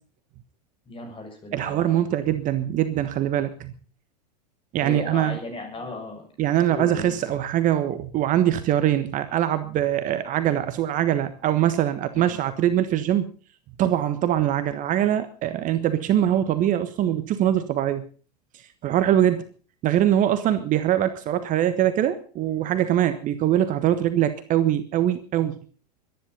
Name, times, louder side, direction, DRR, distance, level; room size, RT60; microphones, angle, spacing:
voice 1, 0.9-2.2 4.8-6.2 6.7-7.1 12.1-12.4, left 3 dB, 25° left, 5 dB, 7.1 m, -36 dB
voice 2, 1.5-3.7 4.7-5.4 6.4-13.3 13.8-18.0 18.5-19.5 19.8-25.6, right 11 dB, 40° right, 11 dB, 1.4 m, -23 dB
23.0 x 10.5 x 5.5 m, 0.40 s
hypercardioid pair, 95°, 21 cm